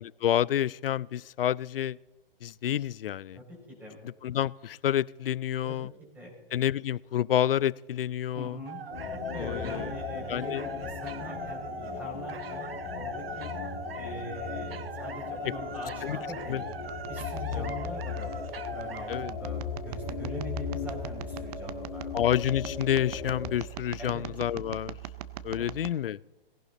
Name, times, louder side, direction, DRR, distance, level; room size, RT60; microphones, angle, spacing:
voice 1, 0.0-2.0 2.4-3.4 4.2-5.9 6.5-8.6 9.4-9.9 10.3-10.6 16.0-16.2 16.5-16.6 17.5-17.7 19.1-19.3 22.1-25.0 25.4-26.2, left 11 dB, 70° left, 23 dB, 0.5 m, -29 dB
voice 2, 3.3-4.0 5.7-6.3 8.3-8.8 9.1-13.5 13.9-16.7 17.1-22.3 24.0-24.2 25.6-25.8, equal, 5° right, -3 dB, 5.4 m, -43 dB
sound 1, 8.7-19.3, right 7 dB, 75° right, 0.8 m, -42 dB
sound 2, 8.9-23.6, left 6 dB, 50° left, 2.9 m, -37 dB
sound 3, 16.1-25.9, right 12 dB, 45° right, 0.8 m, -42 dB
18.5 x 16.5 x 4.0 m, 1.1 s
figure-of-eight pair, 125°, 29 cm